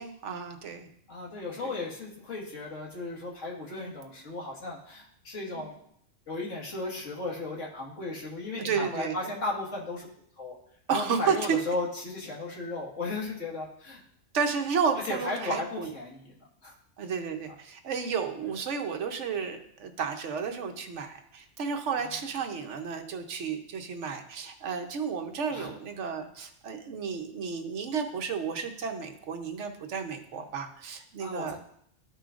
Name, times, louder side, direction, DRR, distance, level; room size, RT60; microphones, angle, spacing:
voice 1, 0.0-0.9 1.6-1.8 3.7-3.9 5.5-5.7 8.6-9.2 10.9-11.6 14.3-15.9 17.0-31.6, right 6 dB, 70° right, 5 dB, 1.1 m, -32 dB
voice 2, 1.1-5.7 6.3-10.1 10.4-10.6 10.9-14.0 15.1-16.2 16.6-16.7 22.0-22.1 25.5-25.7 31.2-31.6, left 2 dB, 75° left, -3 dB, 2.2 m, -35 dB
13.0 x 5.5 x 2.5 m, 0.69 s
omnidirectional pair, 1.3 m